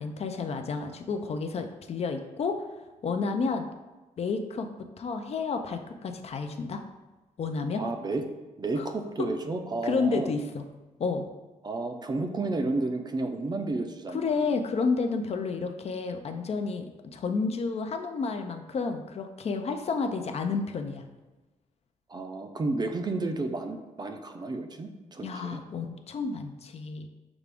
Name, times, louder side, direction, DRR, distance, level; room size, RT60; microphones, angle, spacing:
voice 1, 0.0-2.6 3.0-3.7 4.2-4.7 5.0-6.8 7.4-7.8 8.8-8.9 9.2-9.3 9.8-10.6 11.0-11.3 14.1-21.0 25.2-27.1, left 4 dB, 50° left, 6 dB, 0.4 m, -30 dB
voice 2, 7.7-8.2 8.6-10.3 11.6-14.5 22.1-25.6, right 2 dB, 30° right, 5 dB, 0.4 m, -31 dB
6.0 x 2.5 x 3.4 m, 1.1 s
cardioid pair, 100°, 14 cm